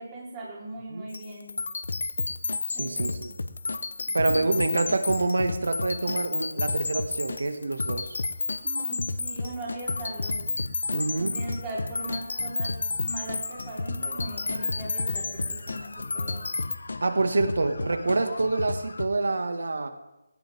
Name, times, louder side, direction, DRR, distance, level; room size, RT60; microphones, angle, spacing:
voice 1, 0.0-1.6 2.7-3.3 4.3-4.6 8.6-10.4 11.2-16.4, right 2 dB, 15° right, -5 dB, 4.2 m, -39 dB
sound 1, 1.1-16.8, left 3 dB, 60° left, 0.9 m, -32 dB
sound 2, 1.8-2.6 3.0-7.4 7.8-19.1, left 2 dB, 75° left, 1.4 m, -34 dB
voice 2, 2.7-3.3 4.1-8.2 10.9-11.4 17.0-19.9, right 3 dB, 70° right, 7 dB, 2.0 m, -27 dB
19.0 x 18.0 x 3.7 m, 0.95 s
figure-of-eight pair, 175°, 0 cm